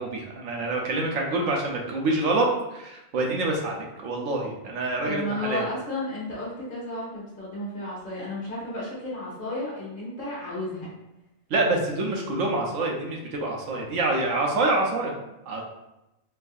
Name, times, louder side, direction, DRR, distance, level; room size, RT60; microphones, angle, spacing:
voice 1, 0.0-5.6 11.5-15.1 15.5-15.6, right 2 dB, 75° right, 0 dB, 1.0 m, -26 dB
voice 2, 5.0-10.9, left 1 dB, 40° left, -6 dB, 1.2 m, -33 dB
4.6 x 2.6 x 2.4 m, 0.93 s
omnidirectional pair, 1.4 m